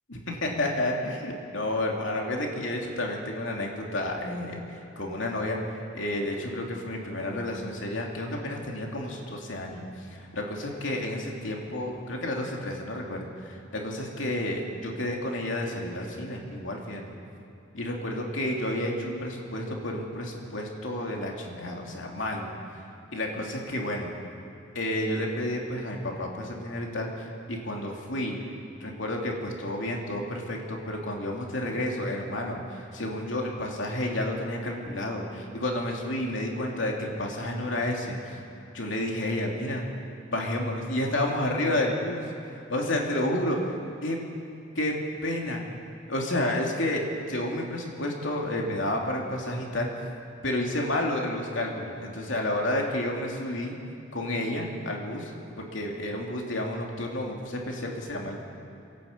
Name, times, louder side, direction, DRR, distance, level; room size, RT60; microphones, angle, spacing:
voice 1, 0.1-5.6 5.9-9.8 10.1-17.0 17.7-22.5 23.1-24.1 24.7-28.4 28.8-38.4 38.7-39.8 40.3-43.7 44.0-44.2 44.8-44.9 45.2-45.6 46.1-49.9 50.4-53.7 54.1-55.3 55.6-58.4, left 1 dB, 85° left, 0 dB, 2.9 m, -30 dB
26.5 x 11.5 x 8.6 m, 2.7 s
head